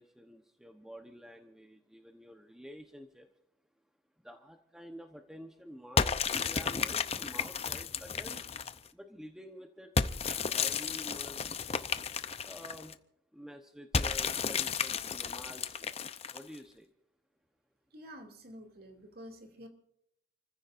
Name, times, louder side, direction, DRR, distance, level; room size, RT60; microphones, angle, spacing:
voice 1, 0.0-3.3 4.2-8.4 8.9-9.9 10.5-11.5 12.4-13.0 13.3-15.9 16.3-16.9, equal, 5° right, 4 dB, 1.0 m, -49 dB
sound 1, 6.0-8.9 10.0-12.9 13.9-16.6, left 5 dB, 30° left, 0.7 m, -33 dB
voice 2, 17.9-19.7, equal, 50° right, 3 dB, 2.6 m, -49 dB
29.5 x 15.0 x 2.6 m, 0.75 s
head